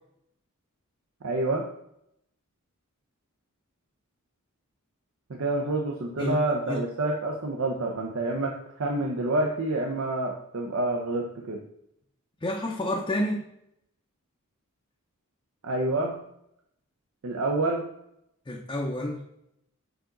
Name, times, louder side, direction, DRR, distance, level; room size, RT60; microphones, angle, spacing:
voice 1, 1.2-1.7 5.3-11.6 15.6-16.2 17.2-17.8, right 2 dB, 65° right, 1 dB, 0.7 m, -28 dB
voice 2, 12.4-13.5 18.5-19.2, left 1 dB, 20° left, -1 dB, 0.6 m, -29 dB
6.8 x 4.0 x 3.8 m, 0.78 s
head